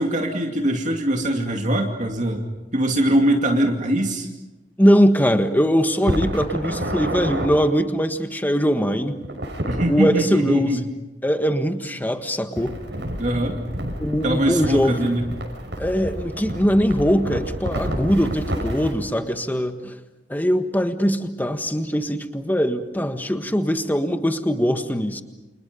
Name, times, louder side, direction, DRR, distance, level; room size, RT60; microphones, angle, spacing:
voice 1, 0.0-2.4 2.7-4.3 9.7-10.8 13.2-13.6 14.2-15.2, right 1 dB, 45° right, 1 dB, 2.5 m, -22 dB
voice 2, 4.8-9.2 9.9-10.9 11.2-12.8 14.0-15.2 15.8-19.9 20.3-25.2, equal, 10° left, 7 dB, 1.6 m, -21 dB
sound 1, 6.0-7.5 9.2-9.9 12.5-18.9, right 1 dB, 80° right, 6.5 m, -29 dB
30.0 x 28.0 x 5.3 m, 1.1 s
head